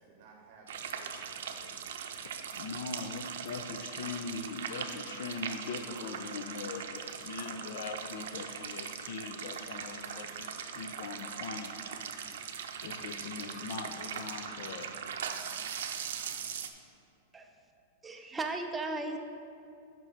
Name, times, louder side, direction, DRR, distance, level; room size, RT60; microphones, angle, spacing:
voice 1, 0.0-2.3, right 4 dB, 45° right, 2 dB, 0.8 m, -58 dB
sound 1, 0.7-16.7, right 7 dB, 75° right, 0.5 m, -40 dB
voice 2, 2.5-11.7 12.8-15.1, left 4 dB, 60° left, 7 dB, 0.5 m, -41 dB
voice 3, 18.0-19.2, right 2 dB, 10° right, 4 dB, 0.5 m, -36 dB
5.8 x 5.3 x 5.8 m, 2.6 s
supercardioid pair, 170°, 0 cm